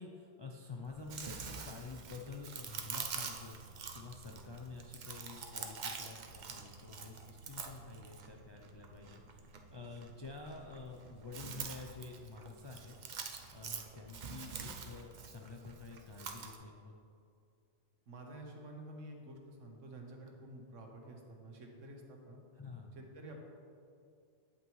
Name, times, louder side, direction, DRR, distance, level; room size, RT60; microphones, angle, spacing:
voice 1, 0.0-12.9 13.5-16.9 22.6-23.0, left 4 dB, 45° left, 0 dB, 0.3 m, -49 dB
Chewing mastication, 0.9-16.6, right 5 dB, 50° right, 0.6 m, -46 dB
voice 2, 18.1-22.4 22.9-23.4, right 1 dB, 85° right, 1 dB, 1.4 m, -50 dB
8.9 x 8.3 x 3.1 m, 2.5 s
omnidirectional pair, 1.3 m